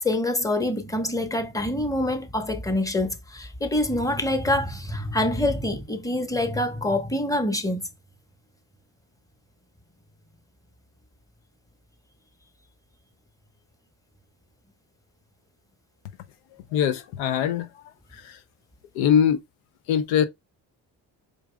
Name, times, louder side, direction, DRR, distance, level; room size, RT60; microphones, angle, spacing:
voice 1, 0.0-7.8, left 1 dB, 5° left, 1.0 m, -25 dB
voice 2, 16.7-17.7 19.0-19.4 19.9-20.3, left 8 dB, 85° left, 0.6 m, -21 dB
5.0 x 4.6 x 2.2 m
supercardioid pair, 55°, 45 cm